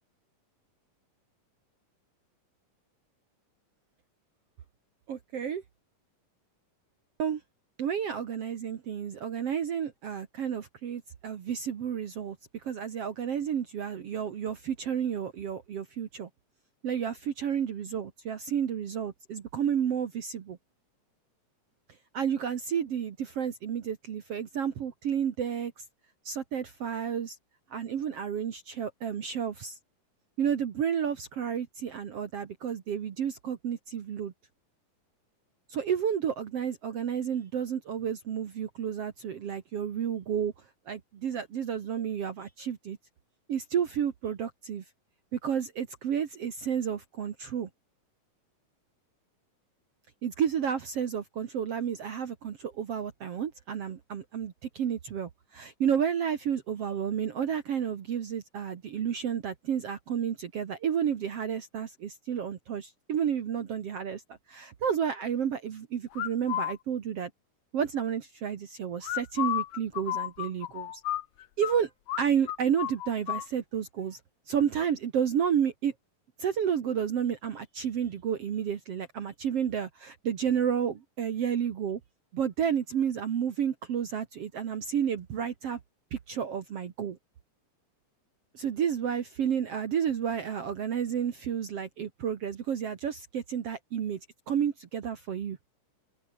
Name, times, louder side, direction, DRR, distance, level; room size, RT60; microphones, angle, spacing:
voice 1, 5.1-5.6 7.2-7.4 7.8-12.4 12.6-16.3 16.8-20.6 22.1-25.7 26.3-27.4 27.7-29.8 30.4-34.3 35.7-40.5 40.9-43.0 43.5-44.8 45.3-47.7 50.2-64.2 64.5-67.3 67.7-70.9 71.6-71.9 72.2-74.2 74.5-75.9 76.4-82.0 82.3-85.8 86.1-87.2 88.5-94.2 94.5-95.6, right 8 dB, 55° right, 2.2 m, -31 dB
sound 1, 66.1-66.7 69.0-71.7 72.1-72.2 72.5-73.5, left 13 dB, 65° left, 1.8 m, -32 dB
open air
omnidirectional pair, 3.9 m